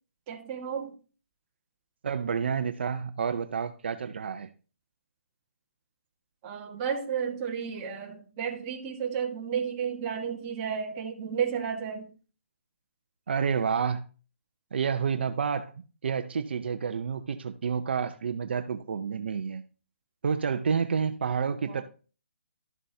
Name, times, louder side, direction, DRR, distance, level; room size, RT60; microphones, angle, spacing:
voice 1, 0.3-0.9 6.4-12.1 21.7-21.8, right 7 dB, 20° right, 1.5 m, -32 dB
voice 2, 2.0-4.5 13.3-14.0 14.7-15.7 16.0-19.6 20.2-21.8, right 6 dB, 55° right, 0.6 m, -29 dB
12.5 x 7.3 x 2.8 m
hypercardioid pair, 170°, 7 cm